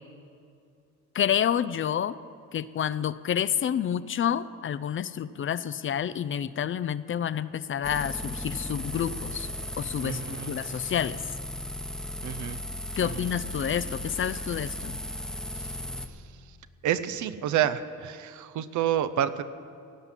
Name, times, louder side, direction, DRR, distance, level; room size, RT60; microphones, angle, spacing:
voice 1, 1.1-2.2 2.5-9.5 9.8-10.2 10.5-11.2 13.0-15.0, left 9 dB, 45° left, 16 dB, 0.5 m, -29 dB
sound 1, 7.8-16.1, left 1 dB, ahead, 0.9 m, -36 dB
voice 2, 10.0-10.5 12.2-12.6 13.0-13.3 16.8-19.4, right 10 dB, 75° right, 12 dB, 0.7 m, -29 dB
16.5 x 5.8 x 9.7 m, 2.4 s
cardioid pair, 90°, 30 cm